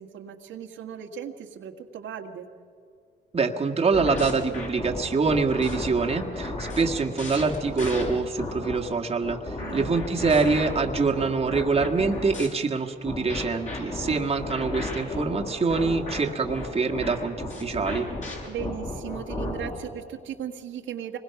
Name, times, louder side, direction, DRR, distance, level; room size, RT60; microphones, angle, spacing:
voice 1, 0.0-2.5 9.6-9.9 14.0-14.3 18.5-21.2, right 9 dB, 75° right, 3 dB, 1.7 m, -37 dB
voice 2, 3.3-18.1, right 4 dB, 30° right, 2 dB, 1.8 m, -25 dB
sound 1, 3.9-8.8 9.2-12.5 13.1-19.8, left 2 dB, 35° left, 6.8 m, -33 dB
25.5 x 21.0 x 5.9 m, 2.3 s
cardioid pair, 90°, 20 cm